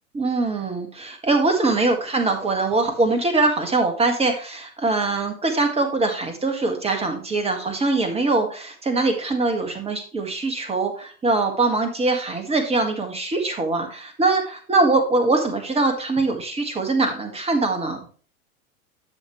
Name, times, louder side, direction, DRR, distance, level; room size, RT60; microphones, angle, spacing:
voice 1, 0.1-18.0, right 3 dB, 15° right, 5 dB, 2.0 m, -22 dB
11.5 x 6.6 x 3.2 m, 0.40 s
figure-of-eight pair, 95°, 43 cm